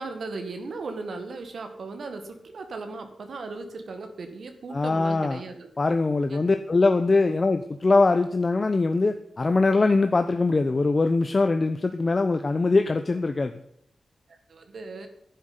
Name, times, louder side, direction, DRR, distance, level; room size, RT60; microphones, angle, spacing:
voice 1, 0.0-5.7 6.3-6.4 14.5-15.1, right 3 dB, 70° right, 6 dB, 2.0 m, -37 dB
voice 2, 4.7-5.4 5.8-13.5, left 3 dB, 40° left, 7 dB, 0.9 m, -22 dB
10.5 x 7.6 x 9.7 m, 0.71 s
wide cardioid pair, 80°, 0 cm